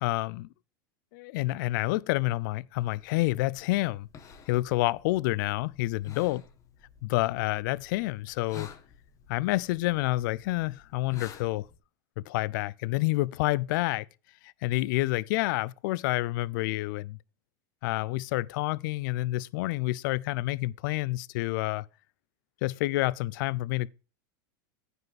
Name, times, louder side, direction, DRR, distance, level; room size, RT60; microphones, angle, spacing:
voice 1, 0.0-0.5 1.1-4.1 4.5-6.4 7.0-8.7 9.3-11.7 12.3-14.1 14.4-17.2 17.8-21.9 22.6-23.9, left 19 dB, 65° left, 0.5 m, -28 dB
sound 1, 2.7-11.8, left 7 dB, 30° left, 2.0 m, -51 dB
9.5 x 5.5 x 6.0 m
supercardioid pair, 135°, 11 cm